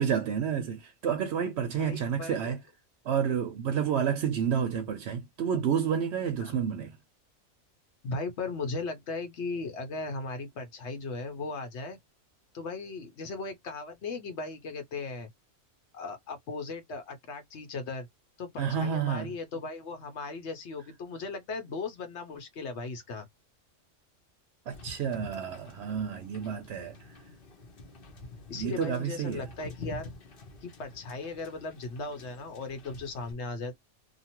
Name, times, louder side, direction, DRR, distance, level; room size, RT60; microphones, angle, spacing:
voice 1, 0.0-2.6 3.0-6.9 18.6-19.3 24.7-27.0 28.5-29.5, right 8 dB, 65° right, 0.8 m, -30 dB
voice 2, 1.7-2.5 6.4-6.5 8.0-12.0 12.5-15.3 15.9-18.1 18.4-23.3 28.5-30.1 30.6-33.7, left 3 dB, 65° left, 1.1 m, -37 dB
Wind / Boat Water vehicle, 24.7-33.3, left 3 dB, 50° left, 1.0 m, -47 dB
2.7 x 2.4 x 2.9 m
omnidirectional pair, 1.3 m